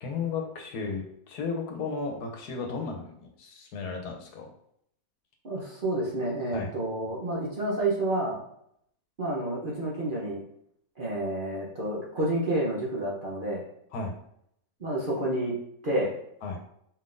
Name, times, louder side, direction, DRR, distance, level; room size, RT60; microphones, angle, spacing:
voice 1, 0.0-4.5 6.5-6.7 13.9-14.1 16.4-16.6, left 4 dB, 80° left, 2 dB, 1.3 m, -34 dB
voice 2, 5.4-8.4 9.2-10.4 11.0-13.6 14.8-15.5 15.8-16.1, right 1 dB, 45° right, -5 dB, 0.8 m, -29 dB
4.5 x 3.8 x 2.5 m, 0.72 s
omnidirectional pair, 1.6 m